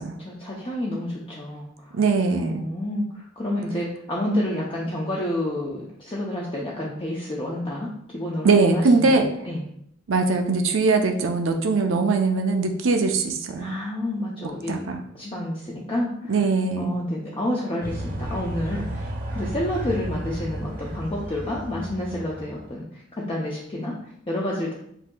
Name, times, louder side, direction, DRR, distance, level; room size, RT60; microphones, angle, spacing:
voice 1, 0.2-2.0 2.3-9.6 13.6-14.8 15.1-16.4 16.8-19.1 19.3-24.7, left 1 dB, 25° left, -4 dB, 0.6 m, -29 dB
voice 2, 1.9-2.6 8.4-9.2 10.1-13.8 14.7-15.0 16.3-16.9, right 3 dB, 80° right, 4 dB, 0.6 m, -21 dB
sound 1, 17.8-22.7, right 1 dB, 45° right, 0.9 m, -33 dB
7.8 x 2.8 x 2.3 m, 0.70 s
head